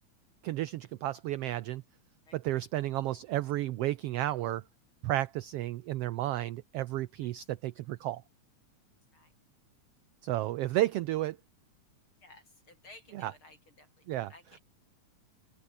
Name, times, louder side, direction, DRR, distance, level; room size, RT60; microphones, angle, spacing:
voice 1, 0.4-1.8 2.3-4.6 5.0-8.2 10.2-11.4 13.1-13.3 14.1-14.3, right 15 dB, 80° right, 1.4 m, -32 dB
voice 2, 2.3-2.6 7.2-7.3 9.1-9.3 12.2-14.6, left 2 dB, 40° left, 8.7 m, -57 dB
open air
omnidirectional pair, 3.4 m